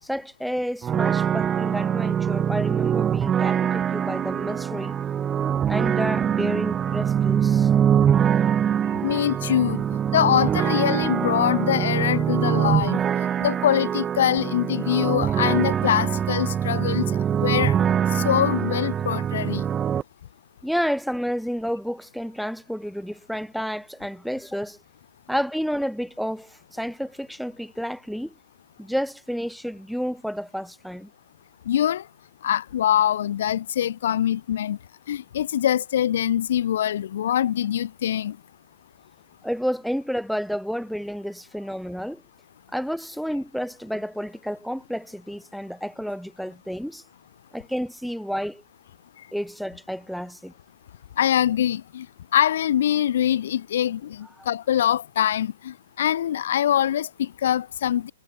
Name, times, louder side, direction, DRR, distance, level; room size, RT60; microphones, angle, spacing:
voice 1, 0.0-4.9 5.7-7.7 20.6-24.8 25.3-28.3 28.8-31.1 39.4-42.2 42.7-47.0 47.5-48.6 49.3-50.5 54.4-54.5, equal, ahead, 3.7 m, -30 dB
sound 1, 0.8-20.0, right 8 dB, 20° right, 1.4 m, -23 dB
voice 2, 9.0-9.8 10.1-13.0 13.4-17.1 17.4-17.7 18.1-19.6 31.7-32.0 32.4-34.8 35.1-38.4 51.2-52.1 52.3-58.1, left 10 dB, 60° left, 1.2 m, -23 dB
figure-of-eight pair, 115°, 0 cm